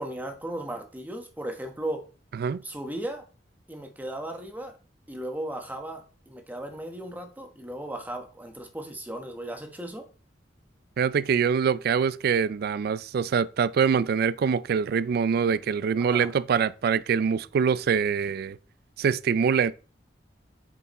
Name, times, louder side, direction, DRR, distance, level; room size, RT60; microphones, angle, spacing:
voice 1, 0.0-2.0 2.6-3.2 3.7-4.7 5.1-10.0 16.0-16.3, right 1 dB, 10° right, 1.0 m, -36 dB
voice 2, 11.0-18.6 19.0-19.7, right 6 dB, 55° right, 0.3 m, -24 dB
6.8 x 4.7 x 4.1 m
head